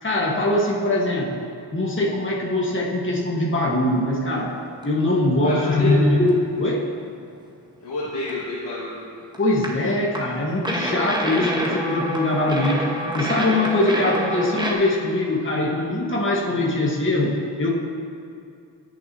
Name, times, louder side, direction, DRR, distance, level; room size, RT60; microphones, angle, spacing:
voice 1, 0.0-4.6 4.8-6.9 9.4-17.7, left 1 dB, 25° left, -3 dB, 2.0 m, -22 dB
sound 1, 3.7-5.0 5.4-5.5 6.3-6.4 6.7-6.8 8.3-8.4 9.3-9.7 10.1-10.2 10.6-14.7, equal, 10° right, 2.3 m, -27 dB
voice 2, 5.4-6.0 7.8-9.0 9.4-9.6, left 2 dB, 65° left, -8 dB, 2.3 m, -30 dB
21.0 x 7.5 x 3.1 m, 2.5 s
cardioid pair, 60°, 47 cm